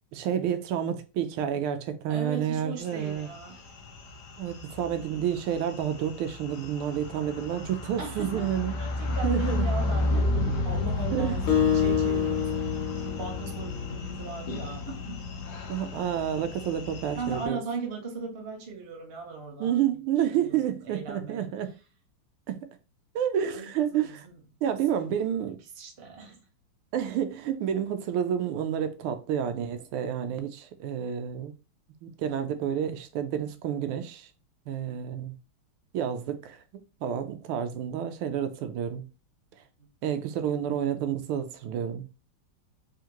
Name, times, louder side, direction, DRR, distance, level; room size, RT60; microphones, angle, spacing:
voice 1, 0.1-3.3 4.4-8.8 9.2-9.7 11.1-11.4 15.7-17.6 19.6-21.7 22.5-22.6 23.1-24.3 24.6-25.6 26.9-31.5 32.0-34.3 34.7-35.3 35.9-36.6 37.0-39.0 40.0-42.1, right 9 dB, 80° right, 1.5 m, -29 dB
voice 2, 2.1-3.6 8.0-15.3 17.1-19.8 20.4-20.6 20.8-21.5 23.4-24.4 24.9-25.2 25.8-26.4 34.9-35.1, right 4 dB, 50° right, 0.7 m, -38 dB
sound 1, 2.9-17.5, left 2 dB, 60° left, 1.2 m, -32 dB
Acoustic guitar, 11.5-14.2, left 8 dB, 80° left, 1.7 m, -27 dB
3.7 x 3.5 x 2.9 m
omnidirectional pair, 2.3 m